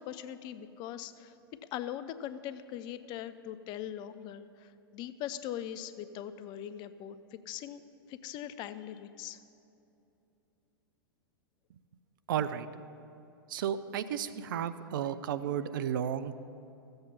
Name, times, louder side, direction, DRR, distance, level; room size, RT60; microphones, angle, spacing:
voice 1, 0.0-1.3 1.7-7.2 7.5-7.8 8.1-9.4, left 11 dB, 35° left, 13 dB, 0.5 m, -41 dB
voice 2, 12.3-12.7 13.5-16.4, right 9 dB, 60° right, 13 dB, 0.5 m, -33 dB
14.5 x 7.9 x 5.6 m, 2.8 s
figure-of-eight pair, 100°, 12 cm